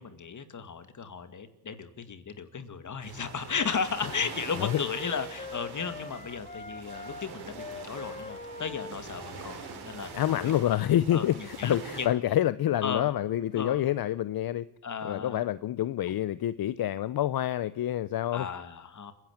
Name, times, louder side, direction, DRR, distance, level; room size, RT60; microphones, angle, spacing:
voice 1, 0.0-10.1 11.1-12.1 12.8-13.1 13.5-13.8 14.8-15.4 18.3-19.1, left 6 dB, 50° left, 2.2 m, -35 dB
sound 1, 3.0-12.1, right 5 dB, 90° right, 4.8 m, -44 dB
sound 2, 3.9-9.7, left 3 dB, 20° left, 2.0 m, -43 dB
voice 2, 10.1-14.6 15.0-18.5, left 12 dB, 65° left, 0.7 m, -27 dB
29.0 x 11.0 x 8.7 m
cardioid pair, 85°, 38 cm